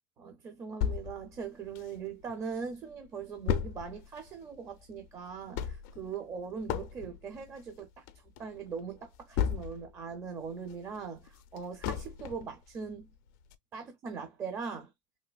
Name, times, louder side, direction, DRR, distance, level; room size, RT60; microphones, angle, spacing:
voice 1, 0.2-13.1 13.7-14.9, right 6 dB, 25° right, 0.5 m, -41 dB
sound 1, 0.8-2.3 2.7-2.8 3.0-10.0 10.4-12.6 13.0-13.1 13.5-13.6, left 9 dB, 55° left, 0.4 m, -35 dB
3.2 x 2.8 x 2.2 m
cardioid pair, 180°, 12 cm